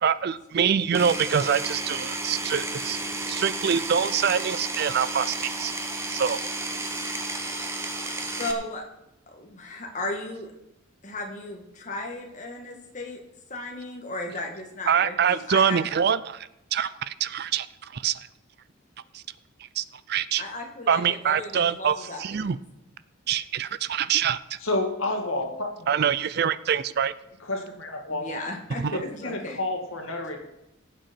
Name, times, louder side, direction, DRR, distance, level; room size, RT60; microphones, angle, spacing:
voice 1, 0.0-3.0 3.3-5.7 6.1-6.4 14.9-17.7 17.9-18.2 19.8-20.4 20.9-22.6 23.3-24.4 25.9-27.1 28.8-28.9, right 7 dB, 50° right, 17 dB, 0.4 m, -25 dB
Power tool, 0.9-8.5, right 2 dB, 15° right, 0.9 m, -32 dB
voice 2, 8.4-8.8 9.3-10.5 11.0-13.2 13.5-15.8 20.4-22.5 28.1-29.6, left 2 dB, 35° left, 1 dB, 1.8 m, -35 dB
voice 3, 24.6-26.2 27.4-28.3 28.9-30.4, left 2 dB, 85° left, 3 dB, 2.0 m, -30 dB
16.5 x 7.7 x 4.4 m, 0.87 s
head